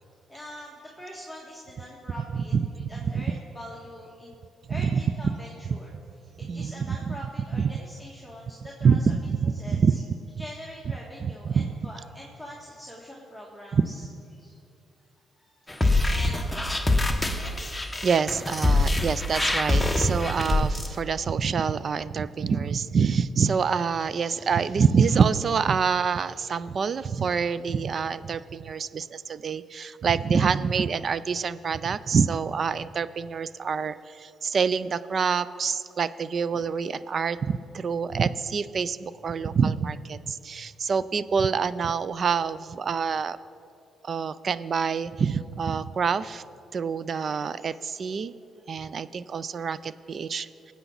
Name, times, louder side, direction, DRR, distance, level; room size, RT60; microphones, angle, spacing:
voice 1, 0.3-2.5 2.9-4.3 4.7-5.9 6.4-9.1 9.6-10.0 10.4-14.1 14.3-14.6 15.4-15.6 16.1-16.6 17.0-17.7 47.1-47.5 48.8-48.9, equal, 5° right, -4 dB, 1.8 m, -44 dB
voice 2, 2.3-3.2 4.7-5.3 6.4-7.2 7.5-7.7 8.8-10.0 11.2-11.7 13.7-13.9 15.8-16.1 18.0-43.4 44.0-46.4 46.7-48.3 48.7-50.7, right 6 dB, 50° right, 16 dB, 0.4 m, -26 dB
sound 1, 15.7-20.9, left 2 dB, 10° left, 1.1 m, -24 dB
20.0 x 8.2 x 4.0 m, 2.6 s
cardioid pair, 90°, 0 cm